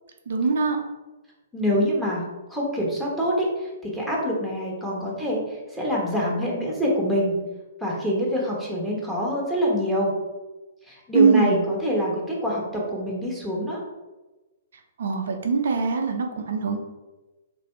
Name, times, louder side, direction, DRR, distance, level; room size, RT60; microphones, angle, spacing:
voice 1, 0.3-0.8 11.1-11.6 15.0-16.8, right 5 dB, 55° right, 4 dB, 0.6 m, -22 dB
voice 2, 1.5-5.4 5.7-7.4 7.8-10.1 10.9-13.8, equal, ahead, -4 dB, 1.2 m, -25 dB
3.4 x 3.3 x 4.4 m, 1.2 s
figure-of-eight pair, 115°, 0 cm